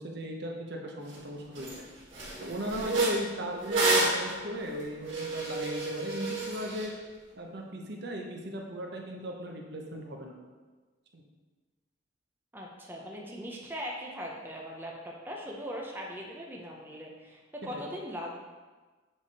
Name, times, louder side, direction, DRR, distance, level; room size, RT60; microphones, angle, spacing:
voice 1, 0.0-1.7 2.4-6.9 7.4-10.3 11.1-11.2 17.6-17.8, equal, 60° right, 1 dB, 0.8 m, -37 dB
sound 1, 1.1-1.2 1.6-1.8 2.1-6.9, right 2 dB, 85° right, 1.7 m, -30 dB
voice 2, 12.5-18.4, equal, 10° right, -2 dB, 0.6 m, -40 dB
7.2 x 3.5 x 4.1 m, 1.3 s
head